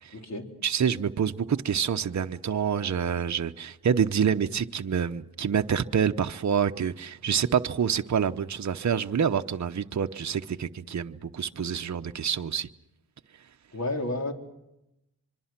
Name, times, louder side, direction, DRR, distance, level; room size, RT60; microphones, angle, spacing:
voice 1, 0.1-0.5 13.7-14.3, left 2 dB, 45° left, 4.2 m, -31 dB
voice 2, 0.6-12.7, right 7 dB, 45° right, 0.9 m, -27 dB
25.5 x 24.5 x 6.0 m
cardioid pair, 50°, 38 cm